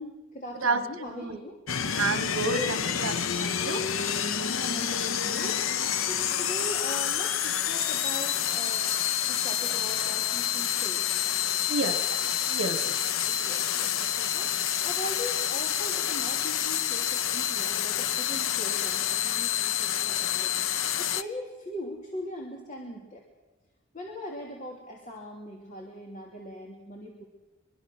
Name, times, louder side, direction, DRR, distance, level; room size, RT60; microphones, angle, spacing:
voice 1, 0.0-1.6 4.5-8.9 9.3-11.2 11.8-12.0 13.2-20.5 21.0-23.2 23.9-27.2, left 1 dB, 40° left, -1 dB, 3.0 m, -40 dB
voice 2, 0.6-1.4 1.9-3.8 11.7-12.0 12.5-13.0, right 3 dB, 85° right, 11 dB, 1.4 m, -30 dB
sound 1, 1.7-21.2, left 9 dB, 75° left, 0.9 m, -28 dB
24.0 x 23.5 x 6.2 m, 1.1 s
head